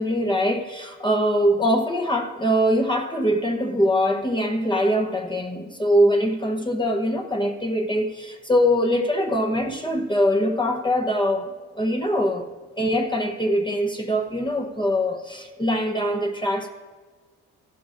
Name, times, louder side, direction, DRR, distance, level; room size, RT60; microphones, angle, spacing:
voice 1, 0.0-11.5 11.7-12.5 12.8-16.7, equal, 15° left, 3 dB, 0.9 m, -23 dB
14.5 x 12.0 x 2.6 m, 1.5 s
cardioid pair, 90°, 30 cm